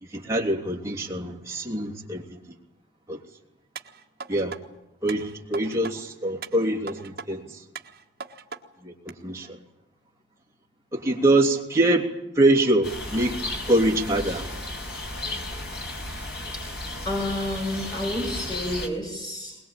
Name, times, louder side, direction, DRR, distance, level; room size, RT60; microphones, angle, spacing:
voice 1, 0.0-2.4 3.1-3.2 4.3-4.6 5.0-7.6 8.8-9.6 10.9-14.5, right 1 dB, 15° right, -1 dB, 2.9 m, -24 dB
sound 1, 3.8-4.6 5.1-5.9 6.4-7.3 7.8-8.6 9.1-9.2, right 5 dB, 50° right, 1.6 m, -39 dB
sound 2, 12.8-18.9, left 1 dB, 55° left, 4.9 m, -34 dB
voice 2, 17.0-19.6, left 1 dB, 20° left, 0 dB, 7.1 m, -30 dB
21.5 x 21.0 x 8.9 m, 0.92 s
head